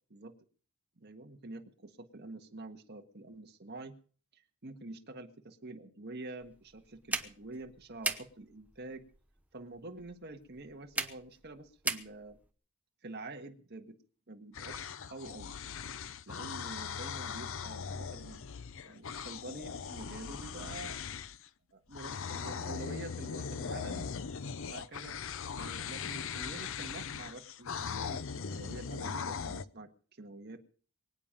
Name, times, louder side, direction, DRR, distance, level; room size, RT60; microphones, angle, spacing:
voice 1, 1.0-4.0 4.3-9.1 9.5-12.4 13.0-14.0 14.3-15.6 16.3-18.4 18.8-21.0 21.7-24.1 24.7-25.2 25.6-30.6, right 2 dB, 45° right, 3 dB, 1.6 m, -47 dB
sound 1, 6.4-12.5, right 2 dB, 5° right, 1.0 m, -40 dB
sound 2, 14.5-21.5 21.9-29.6, left 6 dB, 60° left, 0.6 m, -40 dB
23.5 x 9.1 x 5.3 m, 0.42 s
head